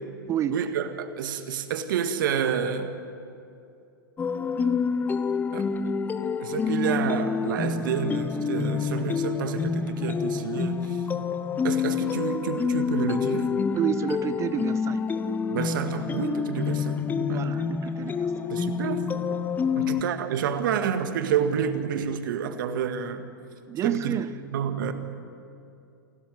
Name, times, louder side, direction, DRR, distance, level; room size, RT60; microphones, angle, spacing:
voice 1, 0.5-2.9 5.5-6.0 6.4-11.0 11.6-13.5 15.5-17.5 18.5-19.0 19.8-23.3 23.8-24.2 24.5-24.9, right 7 dB, 60° right, 8 dB, 1.9 m, -29 dB
sound 1, 4.2-20.0, left 6 dB, 15° left, 0.8 m, -27 dB
voice 2, 13.7-15.1 17.3-18.5 19.7-19.9 23.7-24.3, right 9 dB, 25° right, 15 dB, 0.5 m, -30 dB
28.5 x 13.0 x 9.6 m, 2.6 s
hypercardioid pair, 110°, 12 cm